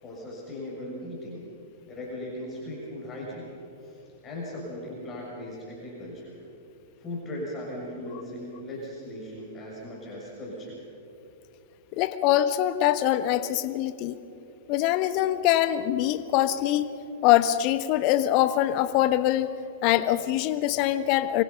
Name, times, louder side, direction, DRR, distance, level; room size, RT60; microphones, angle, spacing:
voice 1, 0.0-1.5 1.8-3.5 3.8-3.9 4.2-6.4 7.0-10.8, left 1 dB, 20° left, -4 dB, 7.0 m, -38 dB
voice 2, 11.9-14.2 14.7-16.9 17.2-19.5 19.8-21.4, left 13 dB, 40° left, 13 dB, 1.2 m, -23 dB
25.5 x 24.5 x 5.7 m, 2.8 s
figure-of-eight pair, 100°, 0 cm